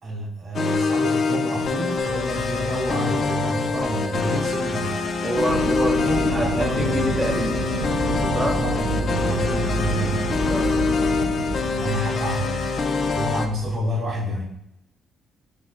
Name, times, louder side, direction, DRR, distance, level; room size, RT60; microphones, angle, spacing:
voice 1, 0.0-5.0 6.0-7.1 8.3-10.3 11.7-12.6 13.0-14.4, equal, 65° right, -7 dB, 1.5 m, -29 dB
sound 1, 0.5-13.5, left 4 dB, 55° left, 0.3 m, -25 dB
sound 2, 2.0-13.8, left 5 dB, 85° left, 1.2 m, -37 dB
voice 2, 5.2-7.6 8.3-8.6 10.4-10.7, equal, 20° right, 2 dB, 0.6 m, -26 dB
Fixed-wing aircraft airplane, 5.5-12.1, right 3 dB, 90° right, 0.4 m, -29 dB
5.1 x 2.8 x 2.3 m, 0.81 s
cardioid pair, 90°, 0 cm